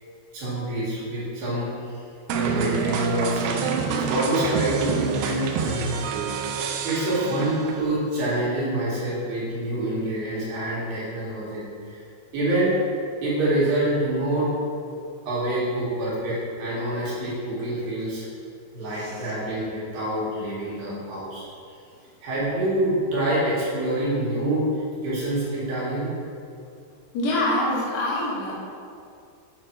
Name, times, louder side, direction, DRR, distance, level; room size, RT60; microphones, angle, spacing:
voice 1, 0.3-2.0 2.3-6.4 6.8-12.0 12.3-12.7 13.2-14.5 15.3-18.3 18.7-21.4 22.2-24.7 25.0-26.1, right 1 dB, 60° right, -7 dB, 3.4 m, -26 dB
sound 1, 2.3-8.0, right 7 dB, 85° right, 2.1 m, -28 dB
voice 2, 19.0-19.3 27.1-28.5, left 1 dB, 75° left, -5 dB, 3.7 m, -25 dB
7.7 x 6.6 x 4.6 m, 2.4 s
omnidirectional pair, 4.9 m